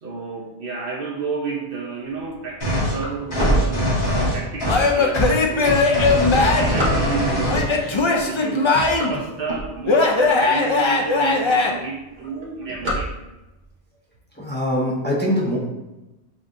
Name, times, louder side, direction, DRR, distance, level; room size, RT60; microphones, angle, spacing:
voice 1, 0.0-8.8 9.1-13.2, right 4 dB, 60° right, -1 dB, 0.8 m, -31 dB
sound 1, 2.2-4.5 5.0-5.1 5.8-7.5 8.1-8.4 8.6-10.2 10.7-10.8 11.0-11.1 11.4-11.8 12.0-13.6, right 1 dB, 45° right, 1.1 m, -27 dB
sound 2, 2.6-3.0 3.3-4.9 5.1-5.3 5.6-7.7, equal, 70° left, 2.0 m, -22 dB
Male speech man speaking / Yell / Laughter, 4.7-6.8 7.5-9.2 9.9-11.7, left 3 dB, 45° left, 0.4 m, -19 dB
voice 2, 14.4-15.6, equal, 10° left, -6 dB, 0.8 m, -22 dB
7.5 x 2.6 x 2.5 m, 1.0 s
omnidirectional pair, 1.1 m